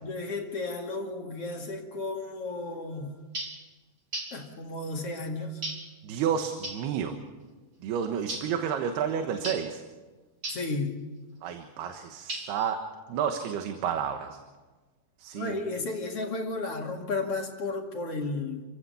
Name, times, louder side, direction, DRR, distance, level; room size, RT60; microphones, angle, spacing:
voice 1, 0.0-3.2 4.3-5.6 10.5-11.0 15.3-18.6, left 3 dB, 45° left, 2 dB, 2.8 m, -33 dB
sound 1, 3.3-3.6 4.1-4.4 5.6-5.9 6.6-6.9 8.3-8.6 9.4-9.7 10.4-10.7 12.3-12.7, right 2 dB, 20° right, 2.8 m, -36 dB
voice 2, 6.0-7.2 7.8-9.8 11.4-12.8 13.1-14.4 15.2-15.6, right 8 dB, 85° right, 6 dB, 3.3 m, -30 dB
29.5 x 16.0 x 7.1 m, 1.3 s
omnidirectional pair, 4.5 m